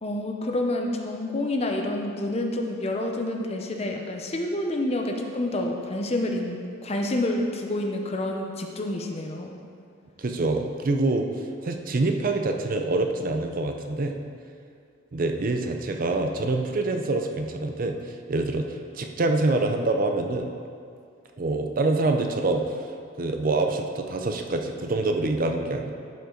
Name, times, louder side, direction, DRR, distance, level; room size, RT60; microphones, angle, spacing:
voice 1, 0.0-9.5, left 1 dB, 30° left, 2 dB, 0.7 m, -28 dB
voice 2, 10.2-14.2 15.1-20.5 21.4-22.6 23.2-25.9, right 2 dB, 40° right, 4 dB, 0.5 m, -26 dB
12.0 x 5.5 x 3.8 m, 2.3 s
head